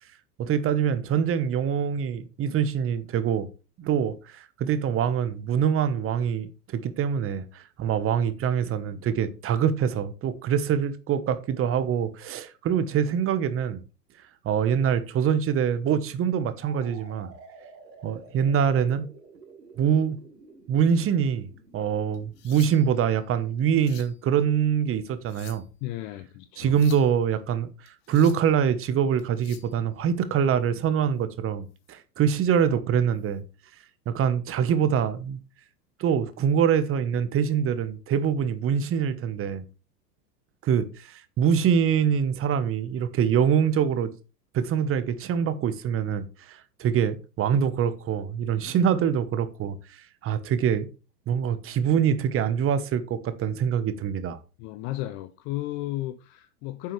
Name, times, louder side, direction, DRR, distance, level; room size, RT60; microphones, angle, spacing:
voice 1, 0.4-3.5 3.8-13.8 14.4-17.3 18.0-19.1 19.8-20.2 20.7-21.5 21.7-25.6 26.6-27.7 28.1-33.4 34.1-35.4 36.0-39.6 40.6-44.1 44.5-50.9 51.3-54.4, right 8 dB, 25° right, 1.1 m, -24 dB
sound 1, 16.6-24.3, right 4 dB, 85° right, 5.1 m, -51 dB
sound 2, 22.1-23.0 23.6-24.2 25.1-25.8 26.6-27.1 27.9-28.5 29.2-29.7 31.8-31.9 32.5-32.7 33.1-33.3 34.5-35.0 36.1-36.3, left 11 dB, 50° left, 2.0 m, -49 dB
voice 2, 25.8-26.7 54.6-56.9, left 15 dB, 25° left, 0.4 m, -34 dB
9.8 x 7.5 x 3.3 m
hypercardioid pair, 105°, 49 cm